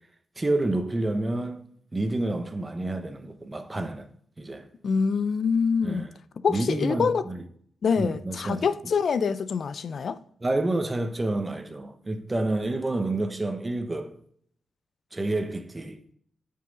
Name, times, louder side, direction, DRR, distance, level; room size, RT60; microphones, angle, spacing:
voice 1, 0.4-1.6 1.9-4.1 4.4-4.7 5.8-6.1 6.5-7.4 8.0-8.7 10.4-14.2 15.1-16.0, right 2 dB, 20° right, 1.1 m, -29 dB
voice 2, 4.8-6.1 6.4-7.2 7.8-10.2, left 5 dB, 60° left, 0.5 m, -25 dB
9.3 x 5.7 x 4.8 m
cardioid pair, 105°, 0 cm